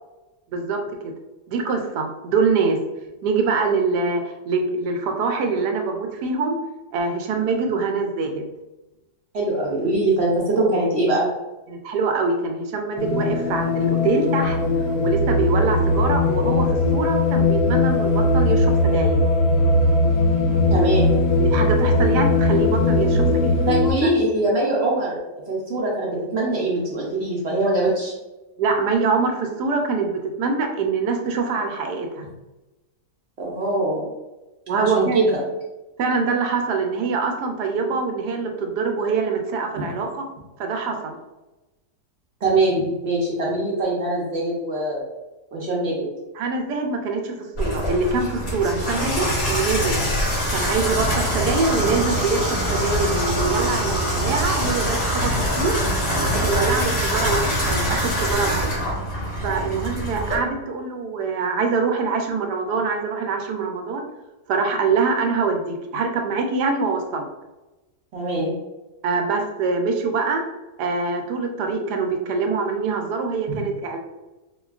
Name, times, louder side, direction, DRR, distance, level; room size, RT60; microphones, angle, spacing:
voice 1, 0.5-1.1 1.5-2.8 3.2-6.6 6.9-8.5 11.7-14.6 15.0-19.2 21.3-23.5 24.0-24.1 28.6-32.3 34.7-35.2 36.0-40.2 40.6-41.2 46.3-50.0 50.5-55.3 55.6-55.7 56.2-58.7 59.4-64.0 64.5-67.2 69.0-70.4 70.8-74.0, right 4 dB, 85° right, 3 dB, 1.2 m, -24 dB
voice 2, 9.3-11.2 20.7-21.2 23.7-25.2 25.5-28.1 33.4-34.1 34.7-35.3 39.8-39.9 42.4-45.0 45.5-46.1 68.1-68.5 73.5-73.6, right 2 dB, 60° right, -4 dB, 0.7 m, -22 dB
sound 1, 13.0-23.9, left 2 dB, 60° left, 1.0 m, -19 dB
Water tap faucet / Bathtub (filling or washing), 47.6-60.4, equal, 40° left, 1.8 m, -24 dB
4.9 x 2.2 x 2.3 m, 1.1 s
omnidirectional pair, 1.7 m